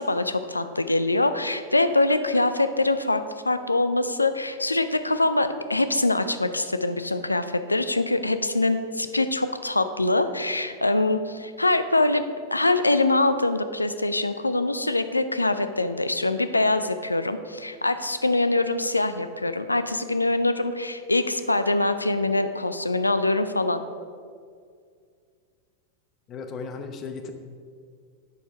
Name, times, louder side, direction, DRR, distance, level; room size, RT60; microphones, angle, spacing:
voice 1, 0.0-12.2 12.5-23.8, left 2 dB, 85° left, 11 dB, 0.4 m, -24 dB
voice 2, 26.3-27.3, left 4 dB, 30° left, 7 dB, 0.8 m, -35 dB
10.5 x 4.7 x 4.8 m, 2.1 s
figure-of-eight pair, 90°, 0 cm